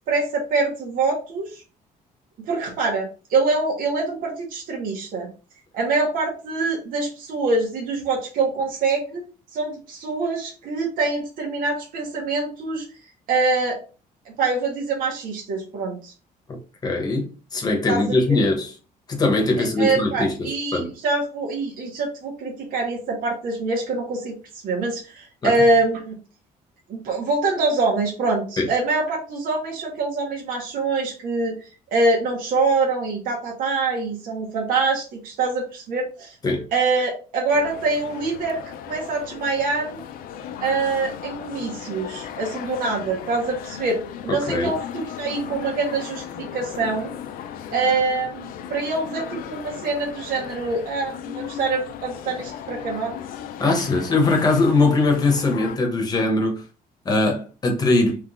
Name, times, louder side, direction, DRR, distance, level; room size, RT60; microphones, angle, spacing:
voice 1, 0.1-1.6 2.4-5.3 5.7-9.2 9.5-12.8 13.3-13.8 14.2-16.1 17.9-18.4 19.6-24.4 24.6-26.2 26.9-36.3 36.7-38.6 38.8-40.0 40.6-47.1 47.7-53.1, right 3 dB, 70° right, 1.5 m, -24 dB
voice 2, 16.8-18.7 19.1-20.9 25.4-25.5 28.6-28.7 36.4-36.7 44.3-44.7 53.6-56.6 57.0-58.2, left 2 dB, 25° left, 1.1 m, -21 dB
sound 1, 37.5-55.8, left 9 dB, 70° left, 0.5 m, -36 dB
3.7 x 3.3 x 3.6 m
cardioid pair, 155°, 15 cm